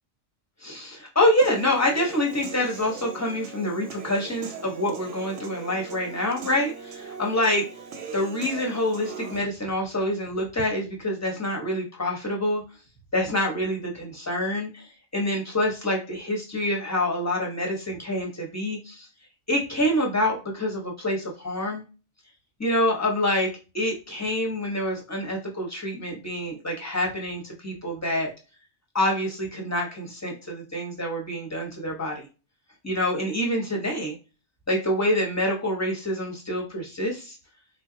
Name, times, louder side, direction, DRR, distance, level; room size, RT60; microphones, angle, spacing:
voice 1, 0.6-7.6 8.1-12.6 13.1-19.1 19.5-21.8 22.6-28.3 28.9-32.3 32.8-34.1 34.7-37.4, left 1 dB, 15° left, 0 dB, 0.9 m, -26 dB
Human voice / Piano, 1.4-9.4, right 6 dB, 90° right, 0.9 m, -40 dB
3.2 x 2.2 x 3.8 m, 0.32 s
omnidirectional pair, 1.2 m